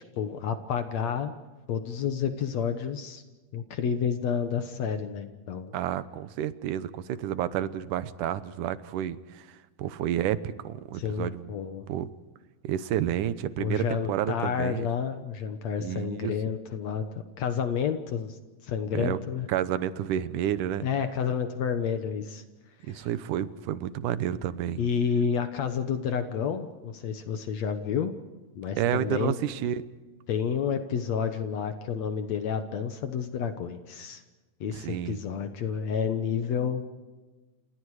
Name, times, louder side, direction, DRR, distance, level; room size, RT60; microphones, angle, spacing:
voice 1, 0.2-1.3 1.7-3.2 3.5-5.7 10.9-11.8 13.6-17.1 17.4-19.5 20.8-22.4 22.9-23.1 24.8-28.1 28.6-29.3 30.3-34.2 34.6-36.8, left 7 dB, 60° left, 8 dB, 2.1 m, -30 dB
voice 2, 5.7-11.5 11.9-12.1 12.6-14.9 15.8-16.3 18.9-19.2 19.5-20.9 22.9-24.8 28.8-29.8 34.7-35.2, right 11 dB, 75° right, 14 dB, 2.3 m, -30 dB
29.0 x 28.0 x 4.9 m, 1.2 s
omnidirectional pair, 4.0 m